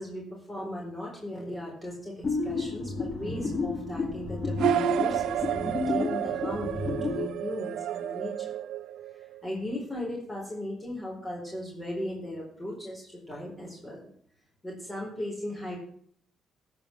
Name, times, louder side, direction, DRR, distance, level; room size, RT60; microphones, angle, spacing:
voice 1, 0.0-8.5 9.1-14.1 14.6-15.8, left 1 dB, 20° left, -3 dB, 4.4 m, -37 dB
sound 1, 2.2-7.3, left 3 dB, 40° left, 2.5 m, -31 dB
sound 2, 4.6-9.4, right 13 dB, 80° right, 0.4 m, -30 dB
14.0 x 5.4 x 7.2 m, 0.63 s
cardioid pair, 90°, 0 cm